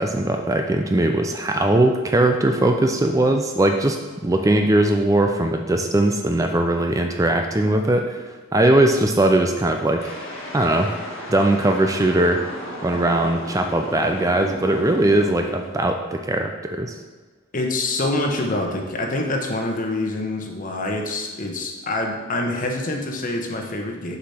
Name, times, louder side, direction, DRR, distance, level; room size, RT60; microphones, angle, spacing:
voice 1, 0.0-10.2 10.5-10.9 11.3-12.4 12.8-16.9, right 1 dB, 15° right, 4 dB, 0.4 m, -20 dB
sound 1, 10.0-16.3, equal, 65° left, 1.9 m, -35 dB
voice 2, 17.5-24.2, left 2 dB, 40° left, 2 dB, 1.0 m, -26 dB
6.8 x 4.9 x 5.7 m, 1.4 s
head